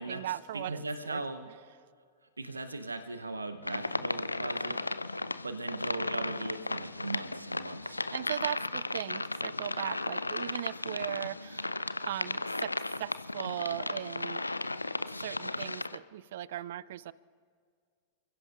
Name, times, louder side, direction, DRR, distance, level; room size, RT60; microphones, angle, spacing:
voice 1, 0.0-1.2 7.9-11.7 12.1-12.7 13.0-14.4 15.2-17.1, right 12 dB, 55° right, 21 dB, 0.4 m, -38 dB
voice 2, 0.5-1.5 2.4-4.8 5.4-8.0, right 3 dB, 80° right, 10 dB, 0.8 m, -38 dB
sound 1, 3.6-16.0, left 2 dB, 85° left, 0.4 m, -35 dB
30.0 x 16.0 x 2.5 m, 2.1 s
figure-of-eight pair, 90°, 0 cm